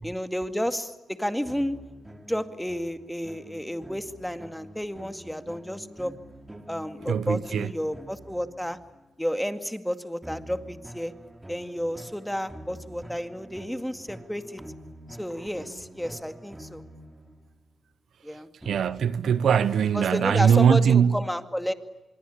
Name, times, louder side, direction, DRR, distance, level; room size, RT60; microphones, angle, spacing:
voice 1, 0.0-1.8 2.3-6.1 6.7-8.8 9.2-11.1 11.5-14.6 15.2-16.8 18.2-18.5 19.9-21.7, equal, 5° left, 2.1 m, -31 dB
sound 1, 1.5-9.1 10.2-17.8 18.6-20.4, right 1 dB, 15° right, 3.2 m, -46 dB
voice 2, 7.1-7.7 18.6-21.1, right 7 dB, 75° right, 0.9 m, -21 dB
26.0 x 22.5 x 10.0 m
cardioid pair, 60°, 0 cm